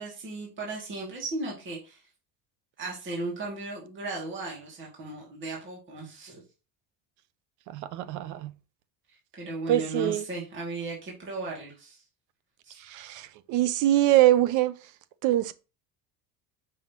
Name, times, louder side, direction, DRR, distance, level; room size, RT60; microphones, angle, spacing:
voice 1, 0.0-2.0 2.8-6.4 9.4-12.0 12.6-12.8, right 2 dB, 30° right, 2.3 m, -36 dB
voice 2, 7.7-8.5 9.7-10.2 12.8-14.8 15.2-15.5, right 14 dB, 45° right, 0.6 m, -24 dB
6.1 x 5.7 x 2.9 m
cardioid pair, 175°, 41 cm